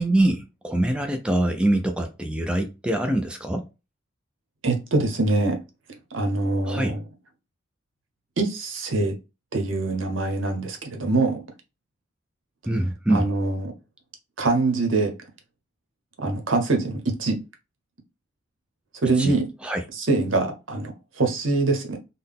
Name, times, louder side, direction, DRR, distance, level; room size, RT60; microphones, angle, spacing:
voice 1, 0.0-3.7 6.7-6.9 12.7-13.2 19.2-19.4 19.6-19.8, right 1 dB, 5° right, 0.3 m, -24 dB
voice 2, 4.6-5.6 6.1-7.0 8.4-9.2 9.5-11.5 13.1-13.7 14.4-15.2 16.2-17.4 19.0-19.5 19.9-20.9 21.2-22.0, right 2 dB, 85° right, 0.9 m, -24 dB
3.8 x 2.1 x 3.5 m
head